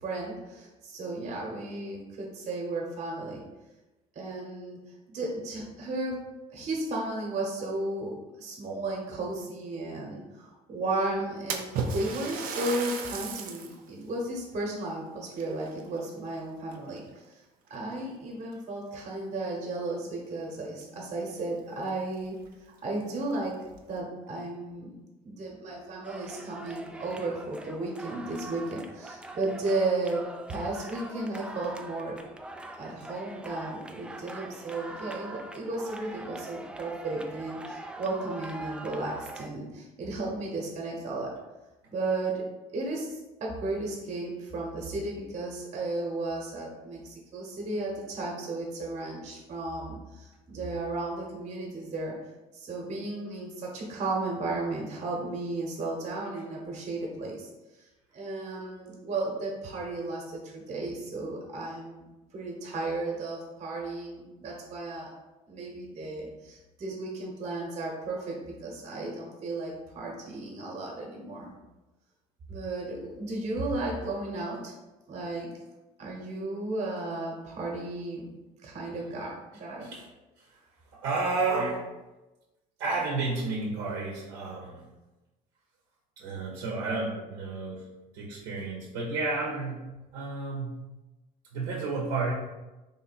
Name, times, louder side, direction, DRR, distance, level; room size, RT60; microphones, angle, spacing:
voice 1, 0.0-3.4 4.1-4.8 5.1-6.3 6.5-17.0 17.7-22.4 22.8-23.6 23.9-24.9 25.2-30.2 30.5-32.2 32.8-41.4 41.9-42.4 42.7-52.2 52.5-57.5 58.1-65.1 65.5-71.5 72.5-74.7 75.1-75.5 76.0-78.4 78.6-79.9, right 2 dB, 45° right, -1 dB, 1.1 m, -34 dB
Splash splatter, 11.5-13.8 14.3-14.4 15.3-16.3 16.7-17.2 18.0-18.1 18.5-18.6 20.8-20.9 21.2-21.3 21.9-22.0 22.4-22.5 23.2-23.8, right 5 dB, 60° right, 0.6 m, -35 dB
sound 1, 26.0-39.5, right 2 dB, 5° right, 0.3 m, -43 dB
voice 2, 80.9-81.8 82.8-84.8 86.2-87.9 88.1-89.9 90.1-90.8 91.5-92.3, right 3 dB, 85° right, -3 dB, 0.9 m, -31 dB
3.6 x 2.7 x 4.1 m, 1.1 s
cardioid pair, 105°, 16 cm